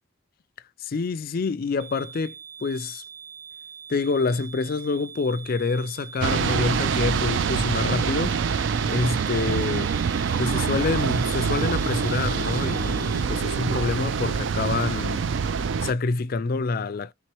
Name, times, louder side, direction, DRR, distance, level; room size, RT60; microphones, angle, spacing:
voice 1, 0.8-2.4 2.6-3.0 3.9-8.4 8.9-9.9 10.4-15.2 15.8-17.1, left 4 dB, 45° left, 0.4 m, -27 dB
sound 1, 1.8-13.2, right 7 dB, 80° right, 1.5 m, -43 dB
sound 2, 6.2-15.9, right 6 dB, 60° right, 0.4 m, -25 dB
3.6 x 3.0 x 4.5 m
head